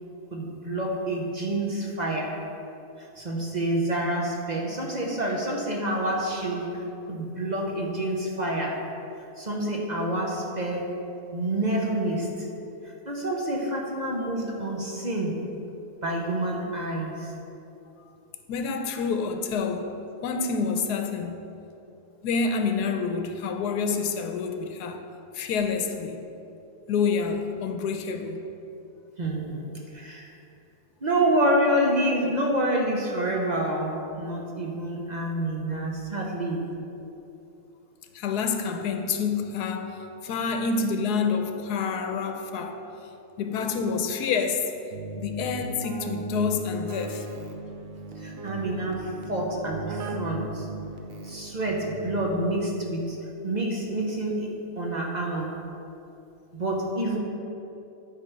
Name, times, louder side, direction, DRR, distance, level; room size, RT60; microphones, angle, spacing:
voice 1, 0.3-2.4 3.0-8.9 9.4-10.9 11.3-12.5 12.8-15.5 16.0-17.3 29.2-29.7 29.9-30.3 31.0-36.6 48.2-50.7 51.2-53.2 53.4-55.7 56.5-57.2, right 1 dB, 35° right, 0.8 m, -28 dB
voice 2, 18.5-19.9 20.2-21.4 22.2-25.0 25.3-26.3 26.9-28.4 38.1-39.9 40.2-42.8 43.4-44.7 45.2-47.3, left 5 dB, 85° left, 1.2 m, -27 dB
Keyboard (musical), 44.9-52.8, right 2 dB, 65° right, 1.0 m, -37 dB
11.0 x 4.0 x 5.7 m
omnidirectional pair, 1.7 m